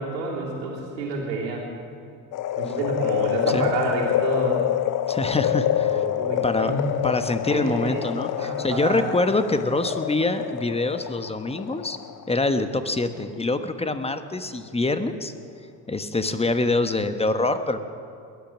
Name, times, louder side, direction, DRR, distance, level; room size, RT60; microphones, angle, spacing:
voice 1, 0.0-1.6 2.6-4.7 5.4-6.9 7.5-8.0 8.4-9.1, right 3 dB, 85° right, -3 dB, 3.4 m, -29 dB
Element Water, 2.3-12.6 13.0-13.1, left 12 dB, 40° left, 0.6 m, -27 dB
voice 2, 5.1-6.1 6.4-6.7 7.0-12.0 12.3-15.3 15.9-17.8, left 2 dB, 10° left, 9 dB, 1.1 m, -25 dB
21.5 x 9.1 x 6.2 m, 2.4 s
hypercardioid pair, 70°, 49 cm